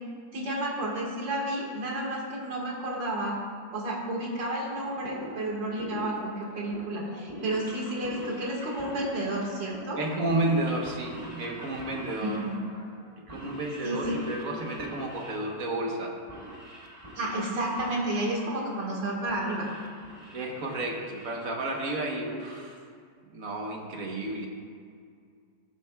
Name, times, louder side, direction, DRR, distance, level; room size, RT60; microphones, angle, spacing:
voice 1, 0.3-3.3 3.7-10.0 12.2-12.6 13.8-14.2 17.2-19.7, right 1 dB, 80° right, -3 dB, 2.5 m, -31 dB
sound 1, 4.7-22.1, right 1 dB, 20° right, 1.2 m, -44 dB
voice 2, 10.0-12.4 13.3-16.1 20.3-22.8 23.3-24.5, right 2 dB, 50° right, 0 dB, 1.4 m, -31 dB
15.5 x 7.4 x 2.3 m, 2.2 s
omnidirectional pair, 2.0 m